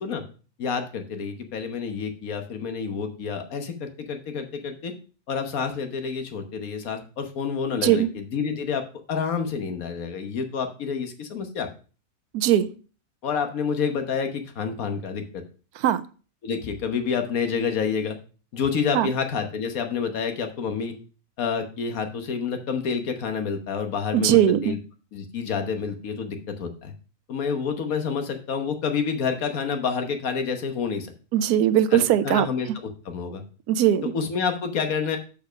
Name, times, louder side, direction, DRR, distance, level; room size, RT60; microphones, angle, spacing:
voice 1, 0.6-4.9 5.3-11.7 13.2-15.4 16.4-18.2 18.5-20.9 21.4-24.8 25.1-26.9 27.3-31.1 31.9-32.7 33.1-33.4 34.1-35.2, left 6 dB, 70° left, 6 dB, 1.6 m, -28 dB
voice 2, 12.3-12.7 15.7-16.0 18.9-19.1 24.1-24.8 31.3-32.5 33.7-34.0, right 11 dB, 90° right, 13 dB, 1.1 m, -20 dB
6.7 x 5.6 x 5.1 m, 0.37 s
omnidirectional pair, 1.6 m